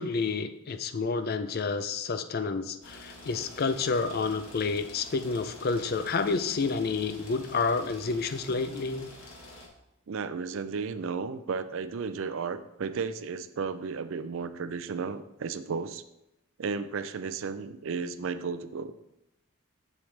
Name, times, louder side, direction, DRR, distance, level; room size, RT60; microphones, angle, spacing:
voice 1, 0.0-9.1, left 4 dB, 45° left, 10 dB, 0.4 m, -29 dB
sound 1, 2.8-9.7, left 1 dB, 75° left, 1.5 m, -48 dB
voice 2, 10.1-16.0 16.6-18.9, right 5 dB, 65° right, 12 dB, 0.4 m, -34 dB
7.1 x 6.4 x 3.3 m, 0.88 s
head